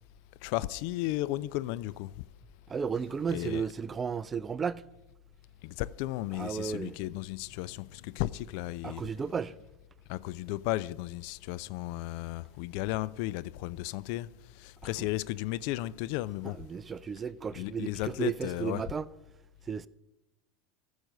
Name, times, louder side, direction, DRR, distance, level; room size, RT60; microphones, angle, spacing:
voice 1, 0.4-2.1 3.3-3.7 5.6-9.0 10.1-14.3 14.6-16.6 17.5-18.8, left 17 dB, 60° left, 0.4 m, -34 dB
voice 2, 2.7-4.8 6.3-7.0 8.8-9.5 15.0-15.1 16.6-19.1 19.7-19.9, right 6 dB, 25° right, 0.4 m, -34 dB
14.5 x 6.3 x 5.5 m
hypercardioid pair, 80°, 0 cm